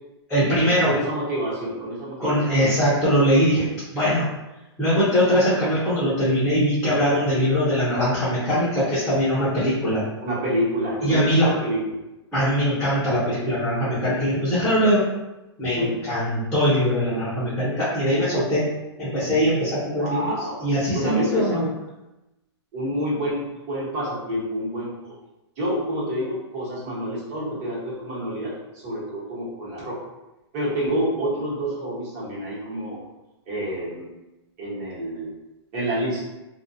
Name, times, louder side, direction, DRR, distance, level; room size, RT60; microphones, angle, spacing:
voice 1, 0.3-0.9 2.2-3.7 3.9-4.3 4.8-10.0 11.0-11.5 12.3-15.1 15.6-18.7 19.0-21.6, equal, 5° left, -12 dB, 0.7 m, -21 dB
voice 2, 0.8-2.8 10.2-12.0 15.8-15.9 20.0-20.6 20.9-21.7 22.7-25.2 25.6-30.0 30.5-33.0 33.5-34.1 34.6-35.3 35.7-36.2, equal, 40° right, -7 dB, 1.1 m, -28 dB
2.4 x 2.3 x 2.6 m, 0.99 s
hypercardioid pair, 155°, 14 cm